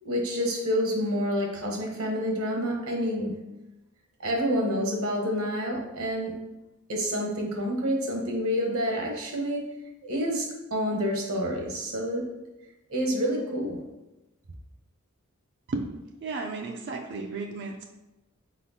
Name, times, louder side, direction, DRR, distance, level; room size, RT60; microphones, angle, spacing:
voice 1, 0.0-3.4 4.2-6.4 6.9-9.6 10.0-12.3 12.9-13.8, equal, 70° right, 0 dB, 1.0 m, -28 dB
voice 2, 16.2-17.8, right 3 dB, 55° right, 2 dB, 0.4 m, -33 dB
4.2 x 4.1 x 2.7 m, 1.0 s
head